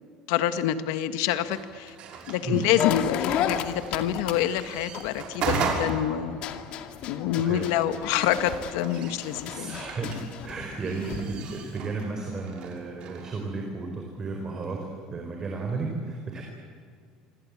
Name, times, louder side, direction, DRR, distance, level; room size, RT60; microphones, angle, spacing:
voice 1, 0.3-2.0 2.3-6.4 7.1-9.8, left 11 dB, 90° left, 10 dB, 1.7 m, -27 dB
sound 1, 1.3-13.3, right 5 dB, 50° right, 6.0 m, -37 dB
sound 2, 2.8-5.9 6.3-11.4, left 9 dB, 55° left, 2.3 m, -33 dB
voice 2, 7.3-7.7 9.5-16.4, right 3 dB, 25° right, 2 dB, 4.8 m, -33 dB
27.5 x 24.5 x 8.6 m, 2.2 s
cardioid pair, 145°, 2 cm